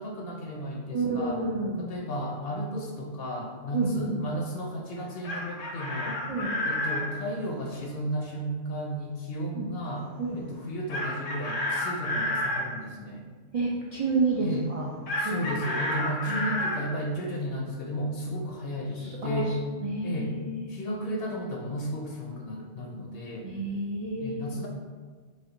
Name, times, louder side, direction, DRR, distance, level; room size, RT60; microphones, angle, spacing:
voice 1, 0.0-1.4 1.8-6.2 6.6-10.1 10.3-13.3 14.4-14.7 15.2-19.6 20.0-20.3 20.7-23.5 24.2-24.7, equal, 60° left, 0 dB, 0.7 m, -34 dB
voice 2, 0.9-1.8 3.7-4.2 6.3-6.5 9.5-9.7 10.2-10.4 13.5-14.9 15.2-15.4 16.3-16.5 18.9-20.7 23.4-24.6, right 3 dB, 55° right, -4 dB, 0.4 m, -30 dB
Chicken rooster, 5.0-7.1 10.9-12.6 15.1-16.8, left 1 dB, 85° left, 1.1 m, -30 dB
5.0 x 2.3 x 3.8 m, 1.5 s
omnidirectional pair, 1.3 m